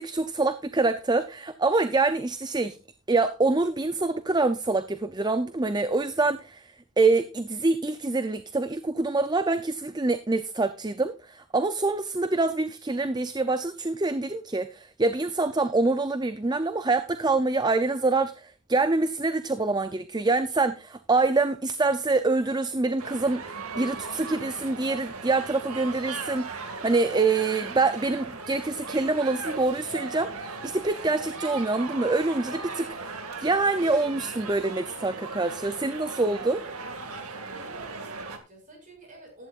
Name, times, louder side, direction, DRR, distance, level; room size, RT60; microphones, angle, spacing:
voice 1, 0.0-2.8 3.1-6.7 7.0-36.6, right 3 dB, 20° right, 0.5 m, -25 dB
sound 1, 23.0-38.4, right 4 dB, 75° right, 2.1 m, -38 dB
voice 2, 37.3-39.5, right 2 dB, 35° right, 7.0 m, -49 dB
15.0 x 12.0 x 2.5 m
head